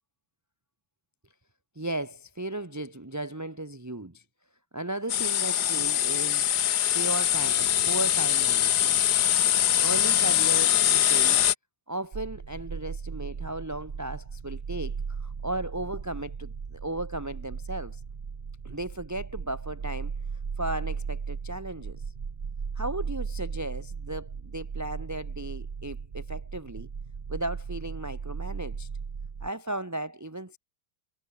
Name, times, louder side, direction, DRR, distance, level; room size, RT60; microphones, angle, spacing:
voice 1, 1.7-4.2 4.7-6.5 6.9-9.0 9.8-11.4 11.9-18.0 18.6-20.1 20.6-22.0 22.7-26.9 27.3-28.9 29.4-30.6, right 1 dB, 10° right, 1.2 m, -35 dB
sound 1, 5.1-11.5, left 11 dB, 60° left, 1.3 m, -23 dB
sound 2, 12.1-29.5, right 5 dB, 35° right, 1.0 m, -36 dB
omnidirectional pair, 2.2 m